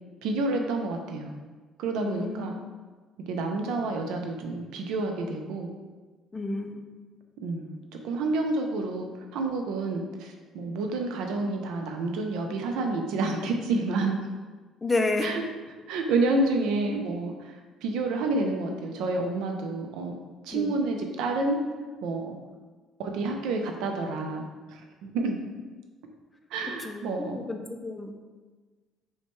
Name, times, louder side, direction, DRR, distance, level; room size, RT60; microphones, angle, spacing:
voice 1, 0.2-1.3 1.8-2.5 3.3-5.7 7.4-7.8 8.0-14.1 15.2-15.4 15.9-20.1 20.4-21.6 22.0-22.4 23.0-25.4 26.5-27.4, right 3 dB, 80° right, 3 dB, 0.5 m, -29 dB
voice 2, 2.0-2.5 6.3-6.8 14.8-15.4 20.5-20.8 26.8-28.1, left 2 dB, 15° left, 4 dB, 0.4 m, -30 dB
5.5 x 2.2 x 3.1 m, 1.4 s
cardioid pair, 155°, 0 cm